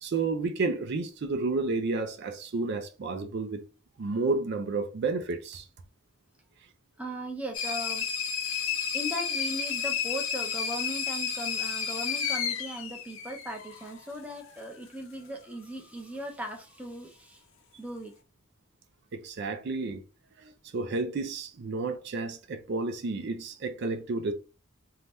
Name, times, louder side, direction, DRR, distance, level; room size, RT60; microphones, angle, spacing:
voice 1, 0.0-3.6 4.0-5.7 19.1-20.0 20.4-24.3, right 3 dB, 55° right, 0.4 m, -31 dB
voice 2, 7.0-8.0 8.9-17.4 17.8-18.1, equal, 5° right, 0.5 m, -38 dB
sound 1, 7.5-13.9, left 7 dB, 70° left, 0.6 m, -31 dB
2.7 x 2.2 x 3.3 m
head